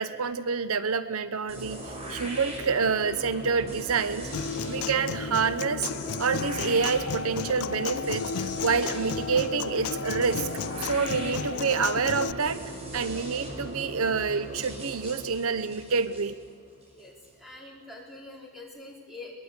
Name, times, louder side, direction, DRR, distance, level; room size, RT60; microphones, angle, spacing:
voice 1, 0.0-4.3 4.7-5.9 6.2-10.5 10.8-12.6 12.9-16.4, right 5 dB, 75° right, 13 dB, 0.7 m, -27 dB
sound 1, 1.5-17.3, right 1 dB, 30° right, 5.1 m, -39 dB
Human voice / Acoustic guitar, 4.3-12.3, left 6 dB, 90° left, 0.5 m, -34 dB
sound 2, 6.0-12.2, left 3 dB, 45° left, 1.1 m, -41 dB
voice 2, 16.9-19.4, left 2 dB, ahead, -2 dB, 3.6 m, -45 dB
22.0 x 21.0 x 8.2 m, 2.2 s
head